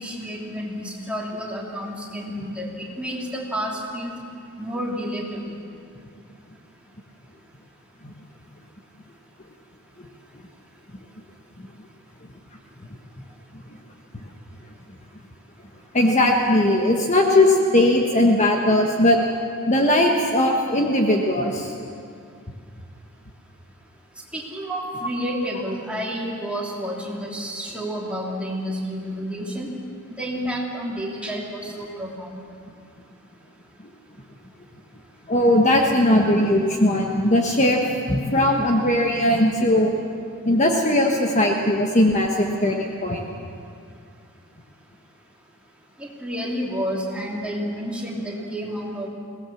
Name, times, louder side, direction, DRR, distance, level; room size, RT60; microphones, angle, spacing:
voice 1, 0.0-4.1 4.6-5.6 24.3-29.7 30.2-32.4 46.0-49.1, equal, 5° right, -3 dB, 3.1 m, -30 dB
voice 2, 15.9-19.2 19.7-21.7 35.3-37.8 38.1-39.9 40.4-43.2, left 1 dB, 30° left, 1 dB, 1.3 m, -19 dB
22.5 x 18.0 x 7.2 m, 2.4 s
head